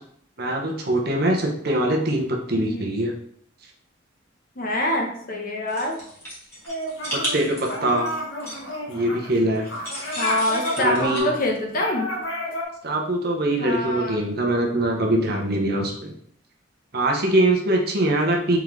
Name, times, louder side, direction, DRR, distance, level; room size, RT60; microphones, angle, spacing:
voice 1, 0.4-3.1 7.1-8.1 8.9-9.6 10.8-11.3 12.8-16.1 16.9-18.6, right 1 dB, 50° right, 0 dB, 0.8 m, -23 dB
voice 2, 2.5-2.9 4.6-6.0 10.2-12.1 13.6-14.2, left 1 dB, 45° left, 1 dB, 0.8 m, -25 dB
sound 1, 5.7-8.8 9.6-11.2, equal, 10° left, 1.6 m, -33 dB
sound 2, 6.7-7.4 7.7-12.6, left 1 dB, 75° left, 1.0 m, -30 dB
3.6 x 3.5 x 3.1 m, 0.64 s
head